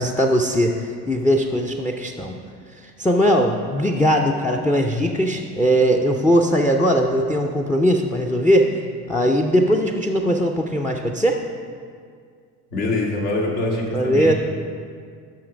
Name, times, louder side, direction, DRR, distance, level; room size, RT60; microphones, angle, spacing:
voice 1, 0.0-2.4 2.7-8.8 9.1-11.4 13.9-14.3, equal, 5° left, 3 dB, 0.3 m, -20 dB
voice 2, 12.7-14.3, left 2 dB, 80° left, -5 dB, 1.8 m, -24 dB
9.4 x 6.0 x 5.0 m, 2.1 s
hypercardioid pair, 65°, 48 cm